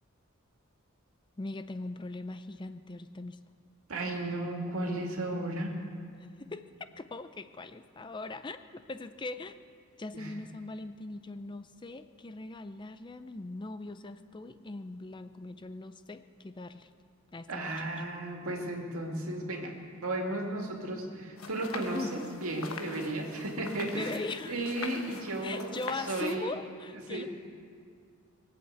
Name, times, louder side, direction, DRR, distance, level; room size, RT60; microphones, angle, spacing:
voice 1, 1.4-3.4 6.4-6.7 7.0-9.6 10.0-16.9 17.3-17.7 21.9-22.2 23.8-24.6 25.4-27.2, left 2 dB, 20° left, 11 dB, 0.5 m, -40 dB
voice 2, 3.9-5.7 10.1-10.3 17.5-24.2 24.5-25.8 26.1-26.5 27.1-27.3, right 1 dB, 80° right, 1 dB, 2.2 m, -34 dB
sound 1, 21.4-26.4, left 4 dB, 85° left, 1.2 m, -43 dB
21.5 x 7.9 x 8.2 m, 2.2 s
head